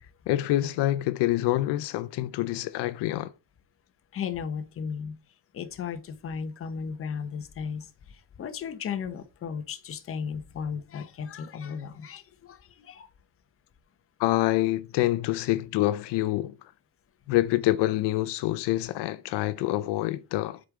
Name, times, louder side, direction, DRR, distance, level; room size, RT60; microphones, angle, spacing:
voice 1, 0.3-3.3 14.2-16.5 17.3-20.6, left 16 dB, 80° left, 0.6 m, -26 dB
voice 2, 4.1-5.2 5.5-13.1, left 6 dB, 30° left, 0.8 m, -35 dB
7.7 x 5.1 x 3.6 m
cardioid pair, 165°, 41 cm